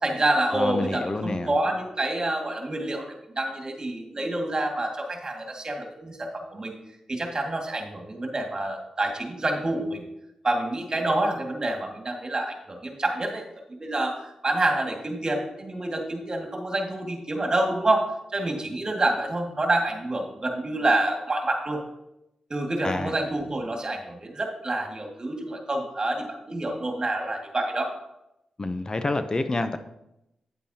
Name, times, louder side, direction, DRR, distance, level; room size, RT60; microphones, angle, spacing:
voice 1, 0.0-6.7 7.1-10.1 10.4-13.5 13.8-21.8 22.5-27.9, right 2 dB, 40° right, 2 dB, 2.0 m, -27 dB
voice 2, 0.5-1.5 22.8-23.1 28.6-29.8, left 2 dB, 35° left, 9 dB, 0.7 m, -28 dB
9.4 x 8.3 x 2.9 m, 0.87 s
supercardioid pair, 40°, 2 cm